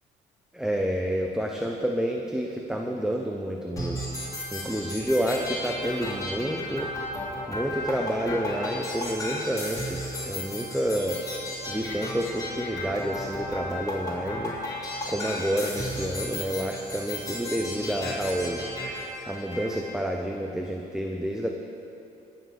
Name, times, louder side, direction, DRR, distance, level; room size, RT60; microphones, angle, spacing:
voice 1, 0.5-4.0 4.5-6.9 7.5-11.2 11.7-14.6 15.1-18.6 19.2-21.5, equal, 5° right, 1 dB, 0.8 m, -29 dB
sound 1, 3.8-19.7, left 1 dB, 20° left, 3.4 m, -34 dB
17.0 x 7.0 x 6.4 m, 2.7 s
cardioid pair, 110°, 17 cm